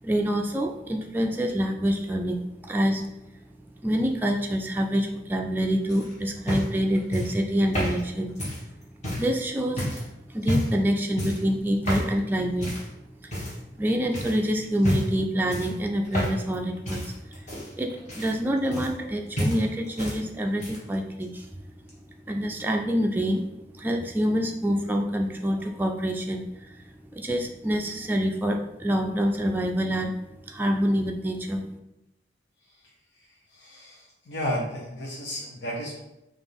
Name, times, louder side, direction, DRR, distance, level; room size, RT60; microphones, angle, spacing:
voice 1, 0.0-3.1 3.8-8.6 9.1-9.9 10.3-12.8 13.2-21.5 22.3-23.5 23.7-30.2 30.5-31.7, equal, 10° right, 1 dB, 0.3 m, -27 dB
sound 1, 5.9-9.3 9.8-10.1 10.4-10.8 11.2-11.5 11.8-12.1 12.6-12.9 13.3-13.8 14.1-14.4 14.8-15.2 15.5-16.6 16.8-19.1 19.4-20.2 20.5-20.9 21.9-22.0, equal, 40° left, 1.6 m, -30 dB
voice 2, 33.5-36.0, equal, 80° left, -3 dB, 0.8 m, -33 dB
6.0 x 2.5 x 3.4 m, 0.91 s
head